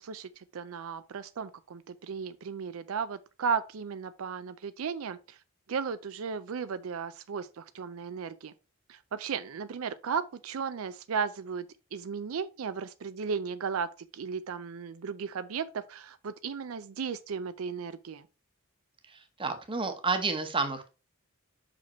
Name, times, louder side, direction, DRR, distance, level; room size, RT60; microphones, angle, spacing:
voice 1, 0.0-5.4 5.7-8.5 8.9-18.3, right 6 dB, 75° right, 0.4 m, -35 dB
voice 2, 19.1-20.9, right 4 dB, 25° right, 1.0 m, -31 dB
5.9 x 5.0 x 4.3 m
head